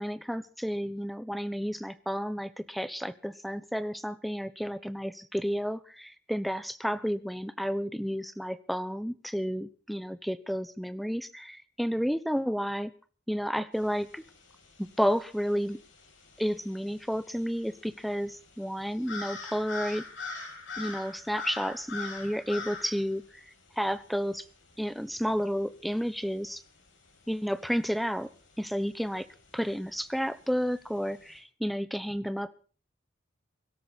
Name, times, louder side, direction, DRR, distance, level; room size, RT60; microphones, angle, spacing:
voice 1, 0.0-12.9 13.3-14.2 14.8-15.8 16.4-20.0 20.8-23.4 23.8-24.4 24.8-26.6 27.3-28.3 28.6-29.3 29.5-32.5, equal, ahead, 13 dB, 1.0 m, -31 dB
sound 1, 13.7-31.4, left 4 dB, 85° left, 7.9 m, -45 dB
24.0 x 13.0 x 4.2 m, 0.40 s
head